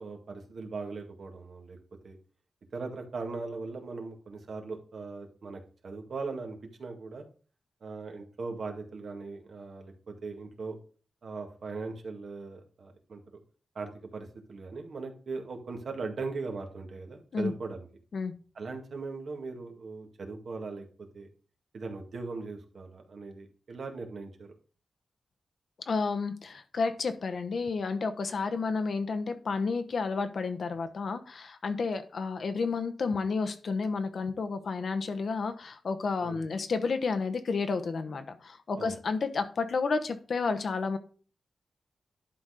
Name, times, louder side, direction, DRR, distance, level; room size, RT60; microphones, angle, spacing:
voice 1, 0.0-1.8 2.0-2.2 2.7-7.3 7.8-10.8 11.2-13.2 13.8-17.9 18.6-20.9 21.1-21.3 21.7-24.5 36.2-36.4 38.8-38.9, right 4 dB, 65° right, 3 dB, 1.9 m, -39 dB
voice 2, 25.9-41.0, left 4 dB, 60° left, 9 dB, 1.0 m, -31 dB
11.5 x 4.2 x 4.9 m, 0.39 s
wide cardioid pair, 130°, 0 cm